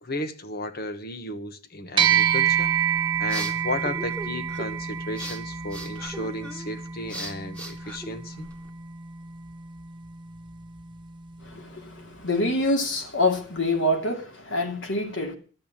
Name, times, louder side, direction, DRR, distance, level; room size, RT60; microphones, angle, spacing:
voice 1, 0.0-2.7 3.2-8.5, left 1 dB, 55° left, 1.4 m, -34 dB
sound 1, 2.0-11.6, right 8 dB, 25° right, 1.1 m, -28 dB
sound 2, 2.8-8.7, right 1 dB, 5° left, 2.1 m, -40 dB
voice 2, 11.4-15.3, left 1 dB, 85° left, 2.8 m, -26 dB
12.5 x 8.3 x 8.8 m
head